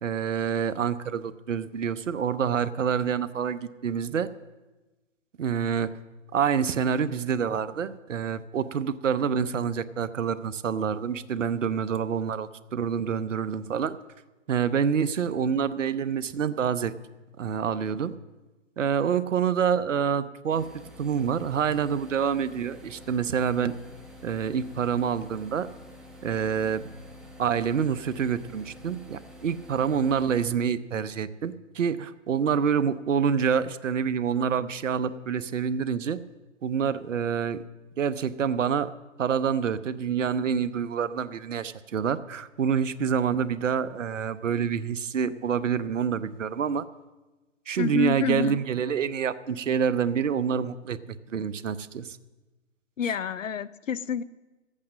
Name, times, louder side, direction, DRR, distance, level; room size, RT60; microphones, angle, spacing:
voice 1, 0.0-4.3 5.4-5.9 6.3-14.0 14.5-16.9 17.4-18.1 18.8-20.7 21.0-23.8 24.2-25.7 26.2-26.8 27.4-36.2 36.6-37.6 38.0-38.9 39.2-46.9 47.7-52.2, right 7 dB, 80° right, 15 dB, 0.8 m, -27 dB
sound 1, 20.5-30.5, left 1 dB, ahead, 1.2 m, -48 dB
voice 2, 47.8-48.6 53.0-54.2, left 8 dB, 85° left, 17 dB, 0.7 m, -28 dB
14.0 x 8.6 x 7.4 m, 1.2 s
hypercardioid pair, 140°, 37 cm